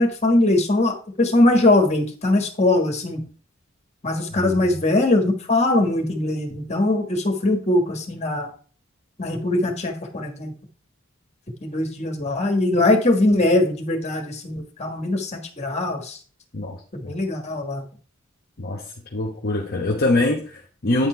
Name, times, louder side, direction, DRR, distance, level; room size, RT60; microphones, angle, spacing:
voice 1, 0.0-3.2 4.0-8.5 9.2-10.5 11.6-16.2 16.9-17.8, left 2 dB, 35° left, 1.5 m, -21 dB
voice 2, 19.1-21.1, left 2 dB, 50° left, 0.9 m, -23 dB
9.0 x 4.3 x 4.5 m
head